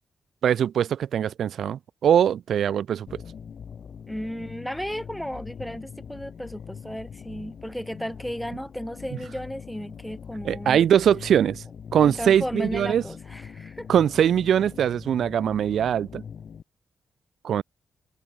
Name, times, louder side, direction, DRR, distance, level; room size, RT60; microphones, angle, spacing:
voice 1, 0.4-3.2 10.4-11.6 11.9-13.0 13.9-16.2 17.4-17.6, right 9 dB, 65° right, 0.7 m, -22 dB
sound 1, 3.1-16.6, left 7 dB, 45° left, 2.2 m, -42 dB
voice 2, 4.1-10.8 12.0-13.9, equal, ahead, 0.8 m, -34 dB
wide cardioid pair, 170°, 0 cm